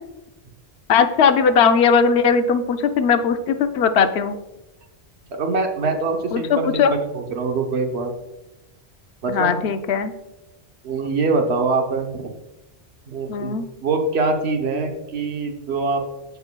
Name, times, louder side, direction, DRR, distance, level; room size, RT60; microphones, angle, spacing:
voice 1, 0.9-4.4 6.3-6.9 9.3-10.1 13.3-13.6, left 6 dB, 80° left, 9 dB, 0.9 m, -18 dB
voice 2, 5.3-8.1 9.2-9.6 10.8-12.3 13.1-13.6 13.8-16.0, right 3 dB, 80° right, 3 dB, 1.1 m, -23 dB
13.5 x 4.5 x 2.2 m, 0.97 s
omnidirectional pair, 1.1 m